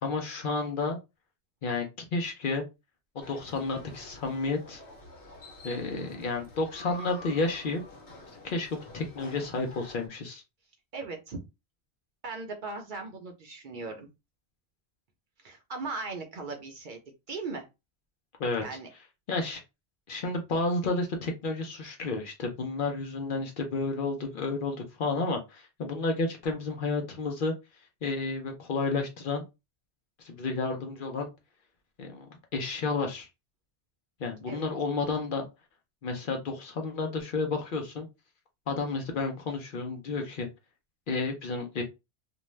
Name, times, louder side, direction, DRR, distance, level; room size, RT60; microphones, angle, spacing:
voice 1, 0.0-1.0 1.6-1.9 2.1-2.6 3.1-4.8 5.6-7.8 8.4-10.4 18.4-18.6 19.3-19.6 20.1-27.5 28.0-29.4 30.2-31.3 32.0-33.3 34.2-35.4 36.0-38.1 38.7-40.5 41.1-41.8, left 3 dB, 60° left, 3 dB, 0.7 m, -31 dB
sound 1, 3.2-10.1, left 2 dB, 85° left, 1.1 m, -48 dB
voice 2, 10.9-11.4 12.2-14.1 15.4-17.0 17.3-17.6 18.6-18.9 34.5-34.7, right 3 dB, 55° right, 4 dB, 0.7 m, -38 dB
2.5 x 2.2 x 3.1 m, 0.24 s
omnidirectional pair, 1.1 m